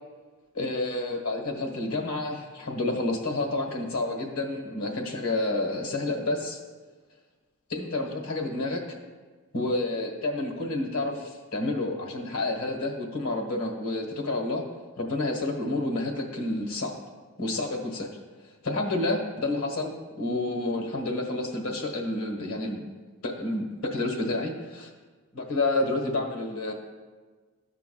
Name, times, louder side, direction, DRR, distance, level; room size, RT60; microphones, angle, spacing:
voice 1, 0.5-6.6 7.7-8.8 9.5-14.6 15.0-16.9 17.4-18.1 18.6-22.8 23.2-24.9 25.3-26.7, left 2 dB, 85° left, 1 dB, 1.4 m, -29 dB
13.0 x 5.8 x 2.3 m, 1.4 s
head